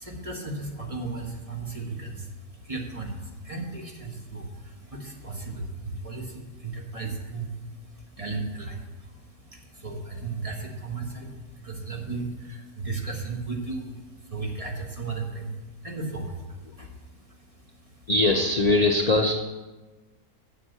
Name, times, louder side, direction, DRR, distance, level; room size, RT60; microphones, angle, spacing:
voice 1, 0.0-18.0, right 3 dB, 25° right, 1 dB, 1.3 m, -35 dB
voice 2, 18.1-19.3, left 2 dB, 60° left, 3 dB, 0.4 m, -21 dB
7.2 x 7.2 x 8.0 m, 1.2 s
omnidirectional pair, 1.6 m